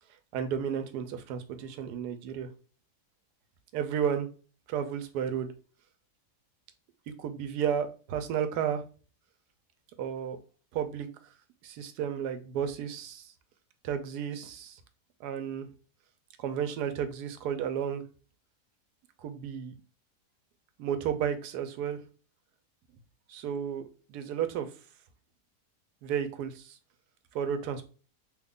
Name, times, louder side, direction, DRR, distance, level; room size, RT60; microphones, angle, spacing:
voice 1, 0.3-2.5 3.7-4.3 4.7-5.5 7.2-8.8 10.0-10.4 10.7-11.1 11.6-13.2 13.8-14.8 15.2-15.7 16.4-18.0 19.2-19.7 20.8-22.0 23.3-23.8 24.1-24.7 26.0-26.8 27.3-27.9, right 8 dB, 90° right, 1.1 m, -32 dB
3.1 x 2.3 x 3.5 m
omnidirectional pair, 1.7 m